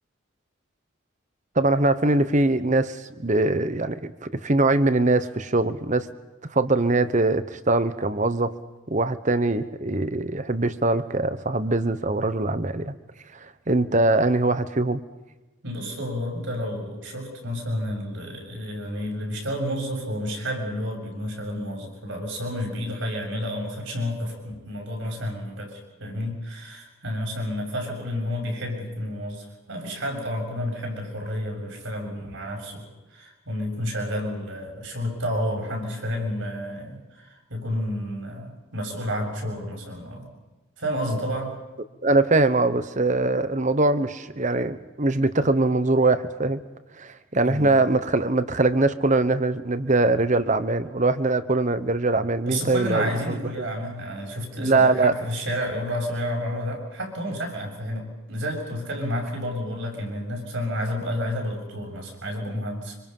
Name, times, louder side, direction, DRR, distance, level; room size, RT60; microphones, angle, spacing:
voice 1, 1.5-6.1 6.5-8.5 8.9-12.9 13.7-15.0 42.0-46.6 47.0-53.4 54.6-55.1, right 2 dB, 35° right, 12 dB, 1.1 m, -22 dB
voice 2, 15.6-32.9 33.1-40.3 40.8-41.6 47.4-47.7 52.4-63.0, equal, 70° right, 2 dB, 7.4 m, -30 dB
26.0 x 25.5 x 5.6 m, 1.1 s
head